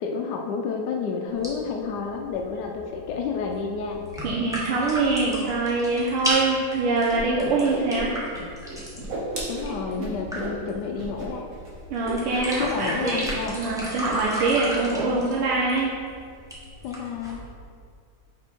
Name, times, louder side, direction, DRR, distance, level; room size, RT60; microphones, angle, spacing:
voice 1, 0.0-4.0 9.5-11.5 12.6-13.6 15.0-15.3 16.8-17.4, left 5 dB, 80° left, 2 dB, 0.9 m, -30 dB
sound 1, 1.3-17.3, equal, 5° right, 0.7 m, -35 dB
voice 2, 4.2-8.1 11.9-13.2 13.5-15.9, right 3 dB, 85° right, -4 dB, 1.7 m, -24 dB
Whoosh swoosh swish, 7.1-7.2 7.5-8.4 8.7-10.6 11.0-11.3 11.5-11.7 12.0-12.6 12.8-13.4, right 1 dB, 45° right, 1.3 m, -33 dB
6.1 x 5.3 x 4.4 m, 2.2 s
omnidirectional pair, 2.4 m